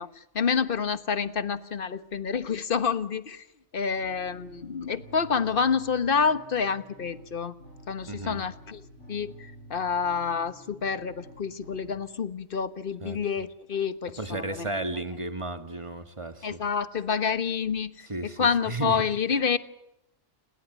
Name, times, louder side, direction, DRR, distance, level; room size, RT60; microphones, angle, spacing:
voice 1, 0.0-3.4 3.7-7.5 7.9-8.8 9.1-14.7 16.4-19.6, left 6 dB, 45° left, 13 dB, 1.4 m, -28 dB
sound 1, 4.0-12.0, right 1 dB, 70° left, 6.9 m, -50 dB
voice 2, 8.1-8.4 13.0-13.2 14.2-16.6 18.1-18.9, right 2 dB, 25° right, 9 dB, 1.8 m, -34 dB
29.0 x 20.5 x 9.2 m, 0.81 s
omnidirectional pair, 1.3 m